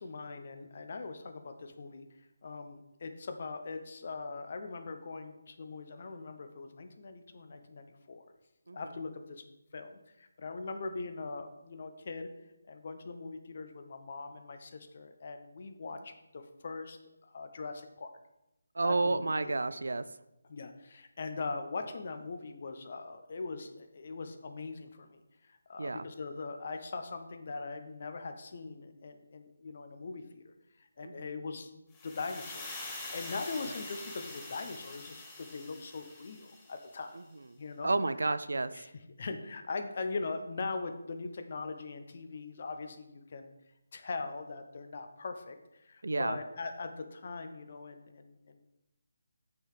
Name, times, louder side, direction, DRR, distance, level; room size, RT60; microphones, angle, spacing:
voice 1, 0.0-2.1 2.4-8.2 8.7-9.4 9.7-12.3 12.7-18.1 18.8-19.5 20.5-37.2 37.6-37.9 38.7-38.9 39.2-43.5 43.9-48.6, left 3 dB, 50° left, 7 dB, 0.9 m, -41 dB
voice 2, 18.7-20.1 25.8-26.0 31.0-31.3 33.7-33.8 37.1-37.2 37.8-38.9 46.0-46.4, right 3 dB, 70° right, 14 dB, 0.4 m, -31 dB
sound 1, 31.9-37.0, left 2 dB, 20° left, 2.2 m, -45 dB
6.2 x 5.7 x 4.9 m, 0.90 s
figure-of-eight pair, 155°, 0 cm